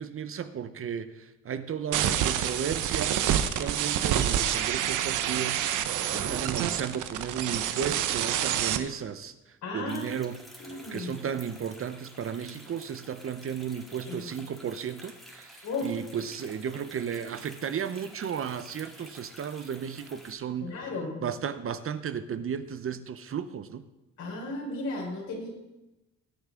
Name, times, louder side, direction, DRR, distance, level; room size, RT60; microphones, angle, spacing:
voice 1, 0.0-20.9 21.2-23.8, right 7 dB, 45° right, 12 dB, 0.7 m, -34 dB
sound 1, 1.9-8.8, right 10 dB, 90° right, 0.8 m, -27 dB
voice 2, 6.0-6.4 9.6-10.0 10.6-11.2 13.9-14.2 15.6-15.9 20.6-21.2 24.2-25.5, left 2 dB, 70° left, -2 dB, 4.6 m, -35 dB
sound 2, 9.9-20.3, equal, ahead, 2.1 m, -51 dB
19.5 x 6.6 x 3.8 m, 0.99 s
cardioid pair, 90°, 30 cm